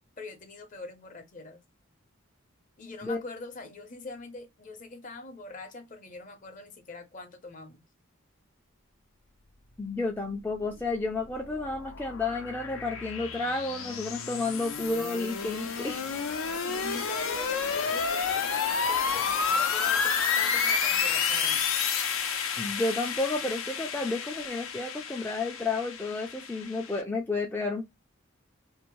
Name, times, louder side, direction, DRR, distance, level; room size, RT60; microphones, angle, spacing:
voice 1, 0.2-1.6 2.8-7.8 16.7-18.5 18.9-21.6, left 3 dB, 40° left, 0.6 m, -43 dB
voice 2, 9.8-16.0 22.6-27.8, left 3 dB, 10° left, 0.3 m, -31 dB
sound 1, 11.0-27.0, left 6 dB, 85° left, 0.6 m, -30 dB
2.6 x 2.0 x 3.0 m
head